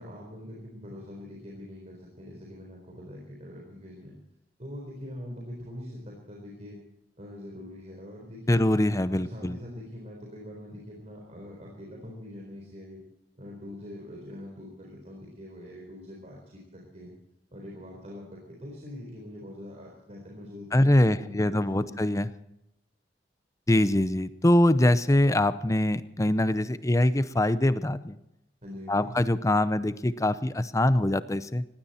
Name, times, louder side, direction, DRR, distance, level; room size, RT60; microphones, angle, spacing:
voice 1, 0.0-4.2 4.6-6.8 7.2-8.7 9.2-13.0 13.4-17.1 17.5-21.9 28.6-29.2, left 1 dB, 40° right, -1 dB, 4.1 m, -43 dB
voice 2, 8.5-9.6 20.7-22.3 23.7-28.2 28.9-31.7, left 1 dB, 20° left, 14 dB, 0.7 m, -23 dB
19.5 x 16.5 x 4.3 m, 0.83 s
head